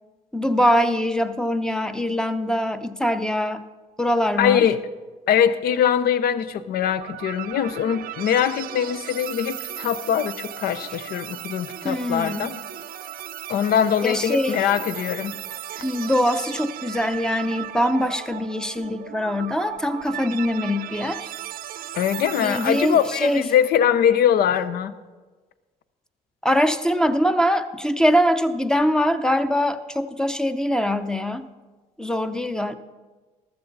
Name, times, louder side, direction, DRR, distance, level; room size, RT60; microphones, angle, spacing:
voice 1, 0.3-3.6 4.0-4.7 11.8-12.5 14.0-14.6 15.8-21.3 22.4-23.4 26.4-31.5 32.0-32.8, equal, 5° left, 9 dB, 0.7 m, -23 dB
voice 2, 4.4-4.8 5.3-12.6 13.5-15.3 21.9-24.9, left 9 dB, 65° left, 13 dB, 0.7 m, -22 dB
sound 1, 6.8-23.7, right 11 dB, 60° right, 0.7 m, -36 dB
14.5 x 13.0 x 4.0 m, 1.3 s
cardioid pair, 110°, 17 cm